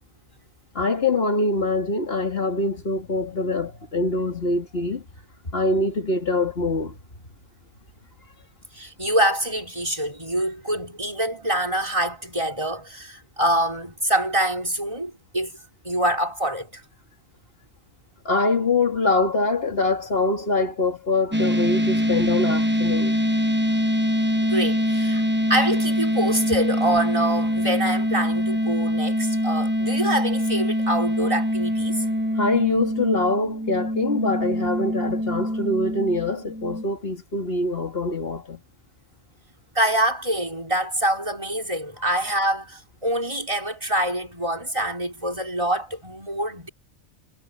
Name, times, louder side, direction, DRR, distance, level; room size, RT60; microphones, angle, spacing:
voice 1, 0.7-5.0 5.5-6.9 18.2-23.2 32.3-38.6, left 2 dB, 55° left, 2.8 m, -24 dB
voice 2, 8.7-15.6 15.8-16.8 24.4-25.2 25.5-32.0 39.7-46.7, right 1 dB, 25° right, 5.6 m, -25 dB
sound 1, 21.3-36.8, equal, 10° right, 1.1 m, -24 dB
omnidirectional pair, 1.2 m